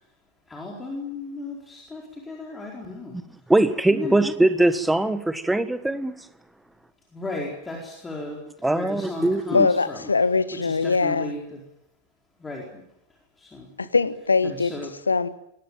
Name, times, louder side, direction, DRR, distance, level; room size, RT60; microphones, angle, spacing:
voice 1, 0.5-3.1 3.9-4.2 7.1-10.1 10.5-11.6 12.4-12.8 13.4-13.7 14.4-14.9, left 2 dB, 10° left, 4.5 m, -35 dB
voice 2, 3.5-6.1 8.6-9.7, right 2 dB, 5° right, 1.5 m, -21 dB
voice 3, 9.5-11.3 13.9-14.7 15.1-15.3, left 4 dB, 75° left, 1.4 m, -21 dB
23.0 x 18.5 x 9.1 m
figure-of-eight pair, 90°, 0 cm